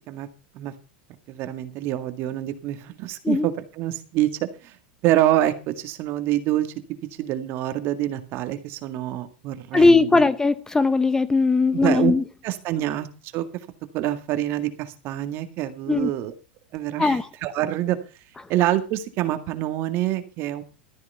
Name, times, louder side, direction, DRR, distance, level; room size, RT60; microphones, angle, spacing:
voice 1, 1.3-4.3 4.6-4.8 5.0-6.7 7.2-10.2 11.7-12.1 12.4-13.1 13.3-13.5 13.9-16.3 16.7-18.0 18.5-20.6, right 13 dB, 50° right, 2.0 m, -26 dB
voice 2, 9.7-12.2 15.9-16.1 17.0-17.3, left 3 dB, 10° left, 0.7 m, -19 dB
13.5 x 9.5 x 5.7 m
supercardioid pair, 115°, 5 cm